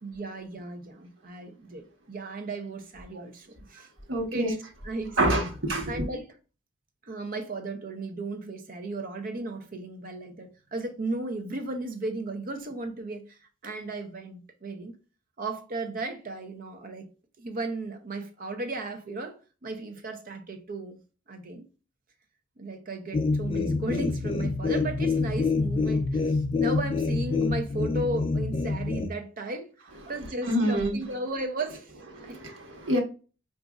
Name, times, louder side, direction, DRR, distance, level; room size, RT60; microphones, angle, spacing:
voice 1, 0.0-3.9 4.3-4.6 4.8-5.2 5.9-6.3 7.0-14.9 15.4-17.1 17.4-21.0 21.3-21.7 22.6-29.7 30.1-31.9 32.2-32.4, right 2 dB, 45° right, 0.7 m, -35 dB
voice 2, 4.1-4.5 5.2-6.0 29.9-31.1 31.9-33.0, right 1 dB, 80° right, 1.2 m, -28 dB
sound 1, 23.1-29.1, left 3 dB, 25° left, 0.3 m, -27 dB
5.0 x 2.5 x 2.3 m
head